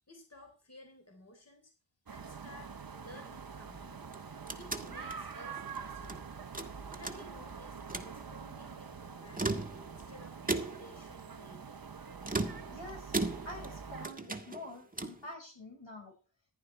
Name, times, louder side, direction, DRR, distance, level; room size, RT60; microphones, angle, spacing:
voice 1, 0.1-1.7 2.1-4.1 4.5-6.3 6.6-11.8, left 1 dB, 30° left, 3 dB, 3.6 m, -55 dB
sound 1, 2.1-14.1, right 6 dB, 45° right, 1.1 m, -46 dB
sound 2, 2.2-10.7, right 5 dB, 85° right, 1.6 m, -56 dB
sound 3, 4.0-6.2 6.5-7.5 7.8-8.2 9.2-10.0 10.5-11.0 12.2-13.8 14.0-15.3, right 2 dB, 15° right, 1.7 m, -37 dB
voice 2, 12.7-16.1, left 1 dB, 65° left, 2 dB, 5.3 m, -47 dB
14.5 x 11.0 x 4.4 m, 0.36 s
wide cardioid pair, 55°, 49 cm